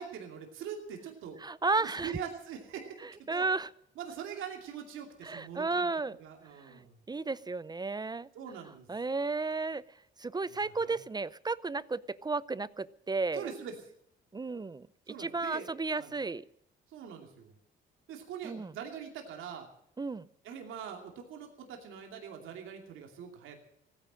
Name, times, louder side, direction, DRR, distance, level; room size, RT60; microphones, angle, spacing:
voice 1, 0.0-1.4 1.8-3.5 4.0-5.9 6.2-7.0 8.3-8.9 10.5-11.0 13.3-13.7 15.1-15.7 16.0-16.1 16.9-17.5 18.1-19.7 20.4-23.6, right 8 dB, 85° right, 3 dB, 2.6 m, -43 dB
voice 2, 1.4-2.1 3.0-3.7 5.2-6.2 6.7-6.8 7.1-8.3 8.9-9.8 10.2-13.5 14.3-14.8 15.2-16.4 18.4-18.7 20.0-20.3, right 3 dB, 20° right, 19 dB, 0.5 m, -33 dB
16.5 x 10.5 x 7.6 m, 0.72 s
cardioid pair, 90°, 20 cm